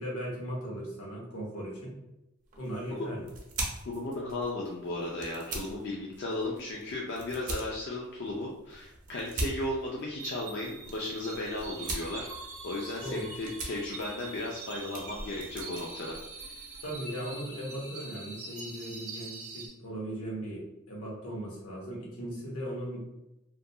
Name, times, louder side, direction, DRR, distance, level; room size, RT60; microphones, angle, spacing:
voice 1, 0.0-1.9 2.6-3.2 13.0-13.3 16.8-20.6 20.9-23.0, right 1 dB, 80° left, -3 dB, 0.9 m, -38 dB
sound 1, 2.5-17.0, right 2 dB, 35° right, 0.5 m, -42 dB
voice 2, 3.8-12.3 12.6-16.7, left 2 dB, 55° left, -3 dB, 0.3 m, -35 dB
sound 2, 10.2-19.7, right 3 dB, 85° right, 0.5 m, -44 dB
2.4 x 2.2 x 2.7 m, 0.89 s
head